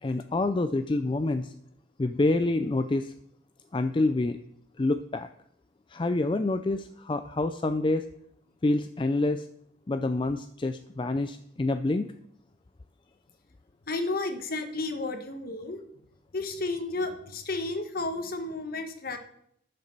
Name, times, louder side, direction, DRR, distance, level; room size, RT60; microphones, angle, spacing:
voice 1, 0.0-1.5 2.0-3.1 3.7-4.4 4.8-5.3 5.9-8.1 8.6-9.4 9.9-12.1, left 2 dB, 25° left, 9 dB, 0.4 m, -27 dB
voice 2, 13.9-15.8 16.3-19.2, left 2 dB, 50° left, 7 dB, 1.3 m, -32 dB
11.0 x 6.8 x 6.7 m, 0.71 s
head